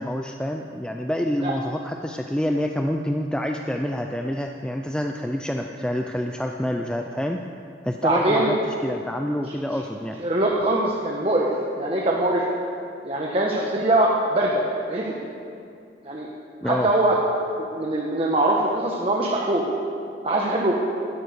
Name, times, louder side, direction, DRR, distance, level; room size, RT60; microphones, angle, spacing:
voice 1, 0.0-7.4 7.8-8.6 8.8-10.2 16.6-16.9, equal, 5° left, 3 dB, 0.4 m, -27 dB
voice 2, 8.0-8.5 10.2-11.5 11.8-12.4 13.0-15.1 16.0-16.3 16.6-17.2 17.7-19.6 20.2-20.7, right 1 dB, 35° right, -2 dB, 1.2 m, -22 dB
12.5 x 11.5 x 8.1 m, 2.6 s
head